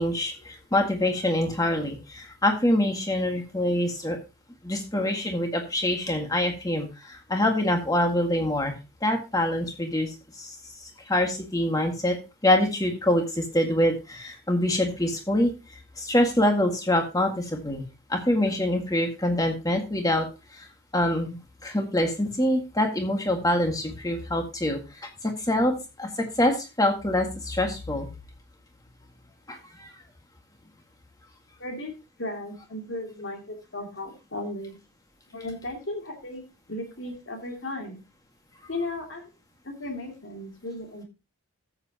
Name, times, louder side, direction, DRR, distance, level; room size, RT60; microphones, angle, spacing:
voice 1, 0.0-4.2 4.6-8.8 9.0-10.5 11.1-12.2 12.4-15.5 16.0-17.8 18.1-20.3 20.5-20.7 20.9-24.8 25.2-26.1 26.4-28.1 29.5-29.9, left 1 dB, 15° left, 4 dB, 1.8 m, -25 dB
voice 2, 31.6-31.9 32.2-34.8 35.3-36.4 36.7-38.0 38.7-39.3 39.6-41.0, left 2 dB, 60° left, 2 dB, 2.7 m, -35 dB
13.5 x 7.9 x 2.9 m, 0.27 s
head